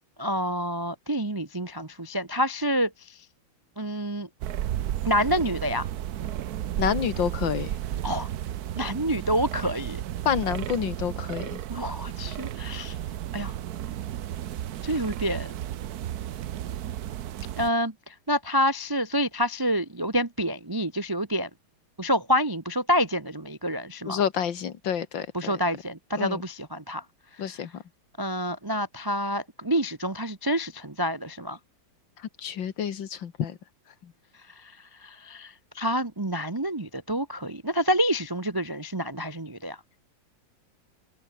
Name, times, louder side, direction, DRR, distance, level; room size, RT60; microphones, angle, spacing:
voice 1, 0.2-3.2 3.8-4.3 5.0-5.9 8.0-8.3 8.7-10.0 11.7-13.0 13.3-13.6 14.8-15.5 17.6-21.5 22.0-24.2 25.3-27.0 28.2-31.6 34.6-34.7 35.0-39.8, equal, 25° right, 0.5 m, -28 dB
sound 1, 4.4-17.7, right 11 dB, 60° right, 1.1 m, -33 dB
voice 2, 6.8-7.7 10.3-11.6 24.1-25.5 26.2-26.4 27.4-27.8 32.4-33.6, left 8 dB, 65° left, 2.1 m, -28 dB
omnidirectional pair, 2.3 m